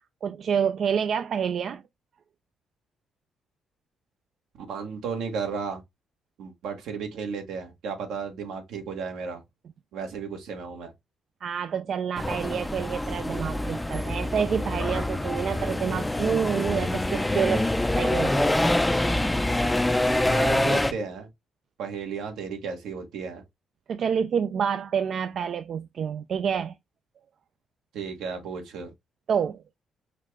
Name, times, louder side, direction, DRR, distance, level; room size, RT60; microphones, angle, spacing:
voice 1, 0.2-1.8 11.4-17.7 18.0-18.6 23.9-26.8 29.3-29.6, right 7 dB, 60° right, 0.3 m, -28 dB
voice 2, 4.6-5.8 6.4-9.4 9.9-10.9 20.3-21.3 21.8-23.4 27.9-28.9, right 5 dB, 85° right, 1.3 m, -34 dB
sound 1, 12.2-20.9, left 1 dB, 10° left, 0.4 m, -25 dB
5.7 x 2.4 x 3.1 m
cardioid pair, 90°, 0 cm